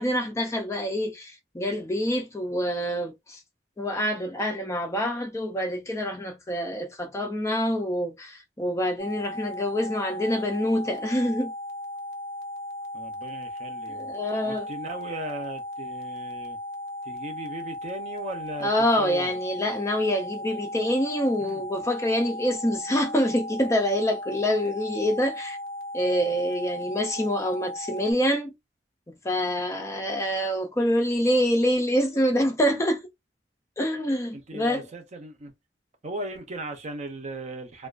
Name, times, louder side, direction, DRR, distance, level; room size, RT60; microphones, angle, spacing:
voice 1, 0.0-3.4 3.8-11.5 14.0-14.7 18.6-25.6 25.9-28.5 29.2-33.0 33.8-34.9, equal, 15° left, 0.4 m, -26 dB
sound 1, 9.0-28.1, left 1 dB, 65° left, 0.5 m, -36 dB
voice 2, 12.9-14.1 14.4-16.6 17.0-18.7 19.0-19.3 21.4-21.6 34.3-35.5 36.0-37.9, right 1 dB, 40° right, 0.6 m, -37 dB
2.3 x 2.3 x 2.4 m
head